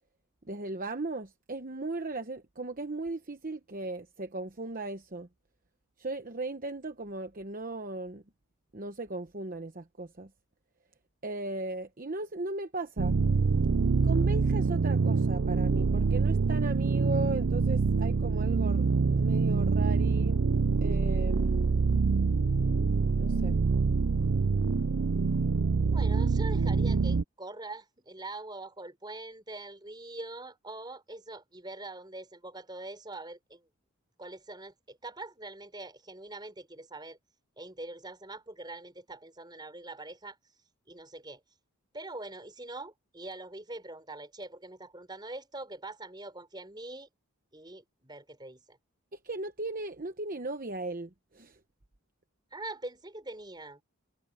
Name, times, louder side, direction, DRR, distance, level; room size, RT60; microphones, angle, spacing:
voice 1, 0.5-5.3 6.0-8.2 8.7-10.3 11.2-13.2 14.0-20.4 20.8-21.9 23.2-23.5 49.1-51.6, right 2 dB, 40° right, 1.0 m, -37 dB
sound 1, 13.0-27.2, right 4 dB, 60° right, 0.5 m, -25 dB
voice 2, 25.9-33.6 34.2-37.2 37.6-40.4 40.9-41.4 41.9-47.1 47.5-48.8 52.5-53.8, right 2 dB, 20° right, 4.7 m, -43 dB
head